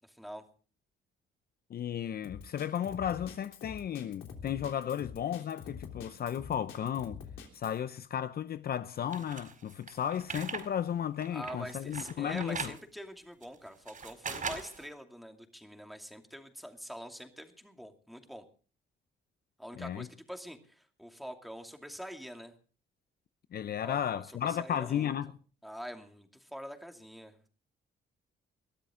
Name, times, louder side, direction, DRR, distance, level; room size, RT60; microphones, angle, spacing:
voice 1, 0.1-0.4 11.3-18.5 19.6-22.5 23.8-25.2 25.6-27.5, equal, ahead, 2.6 m, -45 dB
voice 2, 1.7-7.2 7.5-12.7 19.7-20.1 23.5-25.3, left 9 dB, 50° left, 0.6 m, -34 dB
Drum kit, 2.2-7.8, left 6 dB, 80° left, 3.4 m, -46 dB
sound 1, 9.1-10.7 11.0-12.8 13.4-14.9, right 5 dB, 45° right, 4.7 m, -40 dB
21.5 x 13.0 x 3.7 m
cardioid pair, 90°, 20 cm